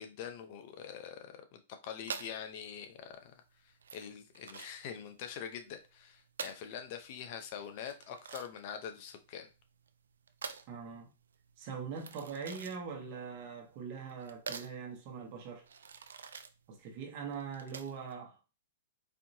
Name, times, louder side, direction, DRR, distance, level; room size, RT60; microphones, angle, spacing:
voice 1, 0.0-3.3 3.6-9.5, left 8 dB, 50° left, 0.6 m, -44 dB
sound 1, 2.0-18.1, right 6 dB, 90° right, 0.4 m, -47 dB
voice 2, 10.7-11.1 11.6-15.6 16.7-18.4, right 6 dB, 45° right, 1.2 m, -42 dB
4.3 x 2.8 x 2.7 m
hypercardioid pair, 135°, 0 cm